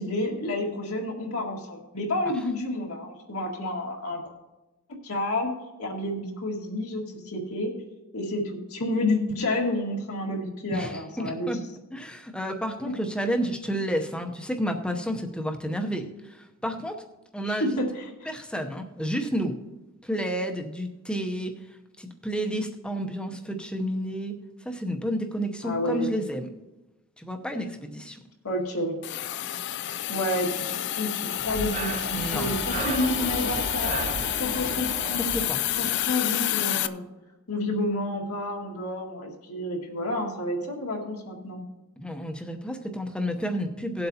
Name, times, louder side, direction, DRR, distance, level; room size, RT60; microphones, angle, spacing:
voice 1, 0.0-4.2 5.0-5.5 5.8-7.7 8.1-11.5 17.6-17.9 25.6-26.1 28.4-28.9 30.1-34.1 34.4-35.4 35.8-37.0 37.5-41.6, left 1 dB, 85° left, -2 dB, 2.1 m, -30 dB
voice 2, 10.7-11.6 11.9-17.0 17.3-17.8 18.3-19.6 20.0-21.6 22.0-26.5 27.2-28.2 32.1-32.5 35.2-35.6 42.0-44.1, equal, 5° left, 4 dB, 0.8 m, -31 dB
Hiss, 29.0-36.9, left 12 dB, 55° left, 0.3 m, -29 dB
Breathing, 31.4-36.3, right 3 dB, 30° right, 0.6 m, -35 dB
18.5 x 7.8 x 2.8 m, 1.1 s
head